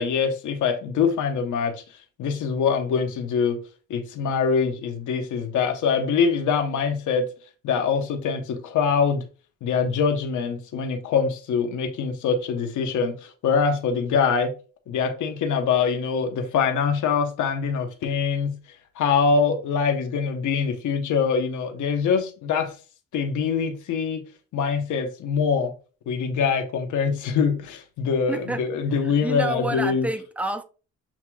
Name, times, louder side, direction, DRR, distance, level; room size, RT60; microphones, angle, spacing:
voice 1, 0.0-1.8 2.2-3.6 3.9-7.3 7.6-9.2 9.6-14.5 14.9-18.6 19.0-22.7 23.1-24.2 24.5-25.7 26.1-30.1, left 6 dB, 75° left, 1.0 m, -24 dB
voice 2, 28.3-28.6 29.0-30.6, right 2 dB, 5° right, 0.6 m, -29 dB
7.3 x 2.8 x 2.3 m
cardioid pair, 90°, 30 cm